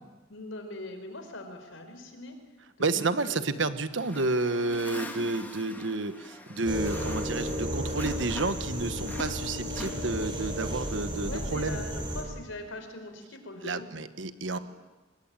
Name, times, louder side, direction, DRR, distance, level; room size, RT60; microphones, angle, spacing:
voice 1, 0.3-2.4 2.8-3.7 11.2-13.9 14.5-14.6, left 2 dB, 85° left, 6 dB, 4.5 m, -41 dB
voice 2, 2.8-11.8 13.6-14.6, right 3 dB, 70° right, 11 dB, 1.3 m, -30 dB
sound 1, 4.0-8.7 9.0-10.5, left 1 dB, 10° left, 2.5 m, -44 dB
sound 2, 6.7-12.2, equal, 25° right, 5.0 m, -33 dB
24.0 x 21.0 x 9.0 m, 1.2 s
head